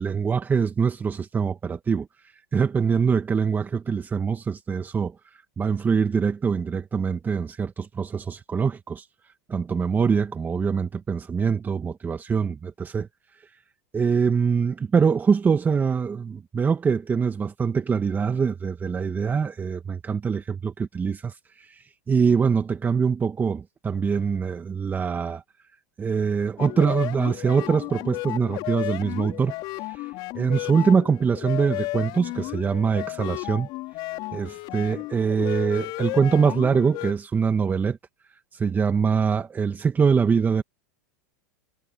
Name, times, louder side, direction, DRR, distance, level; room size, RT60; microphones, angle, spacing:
voice 1, 0.0-9.1 9.5-13.1 13.4-13.5 13.9-25.4 26.0-29.5 29.9-33.7 34.3-38.0 38.3-40.6, right 6 dB, 20° right, 1.5 m, -24 dB
sound 1, 26.6-37.1, left 21 dB, 50° left, 4.8 m, -33 dB
hypercardioid pair, 110°, 9 cm